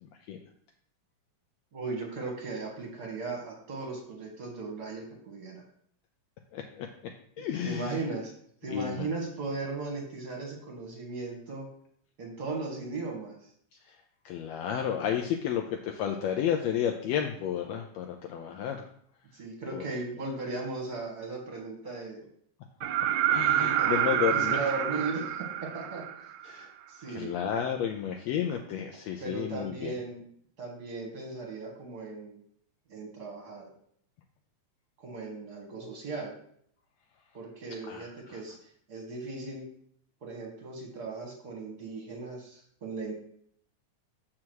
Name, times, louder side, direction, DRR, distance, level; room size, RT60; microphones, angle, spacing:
voice 1, 1.7-5.6 7.6-8.3 8.6-11.7 12.2-13.4 19.3-22.2 23.5-24.0 24.3-26.3 26.9-27.3 29.2-30.2 30.6-32.4 32.9-33.7 35.0-36.4 37.3-38.6 38.9-39.6 40.2-43.1, right 3 dB, 40° right, 0 dB, 1.8 m, -37 dB
voice 2, 6.5-6.9 7.4-8.0 8.7-9.1 13.9-14.0 14.2-18.9 19.7-19.8 23.3-24.6 26.4-26.7 27.1-29.9 37.8-38.4, left 9 dB, 80° left, 3 dB, 1.6 m, -32 dB
sound 1, 22.8-26.6 28.5-28.6, right 11 dB, 80° right, 1.9 m, -28 dB
7.3 x 4.9 x 4.6 m, 0.65 s
omnidirectional pair, 3.4 m